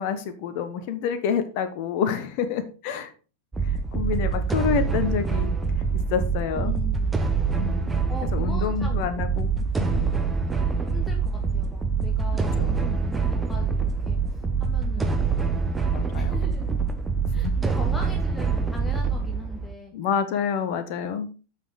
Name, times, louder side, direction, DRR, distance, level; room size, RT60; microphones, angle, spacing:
voice 1, 0.0-3.1 3.6-5.5 6.1-6.8 7.5-8.0 8.3-9.5 9.8-10.1 12.6-12.7 15.0-15.2 15.9-16.4 17.4-17.5 19.9-21.3, left 7 dB, 45° left, 10 dB, 1.1 m, -28 dB
sound 1, 3.5-19.7, right 5 dB, 10° right, 1.1 m, -25 dB
voice 2, 6.5-7.3 8.1-9.2 10.9-15.5 16.1-16.7 17.3-19.9, left 1 dB, 10° left, 2 dB, 1.3 m, -41 dB
7.3 x 6.3 x 4.9 m, 0.35 s
figure-of-eight pair, 90°, 0 cm